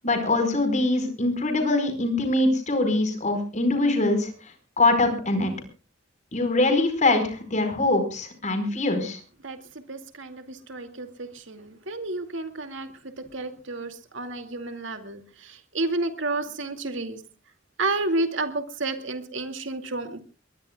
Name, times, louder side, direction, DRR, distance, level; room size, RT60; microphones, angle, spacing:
voice 1, 0.0-4.3 4.8-5.5 6.3-9.2, left 2 dB, 40° left, 7 dB, 4.7 m, -23 dB
voice 2, 9.9-12.9 13.2-17.2 17.8-20.2, right 2 dB, 70° right, 7 dB, 2.4 m, -31 dB
22.5 x 21.0 x 2.3 m, 0.37 s
head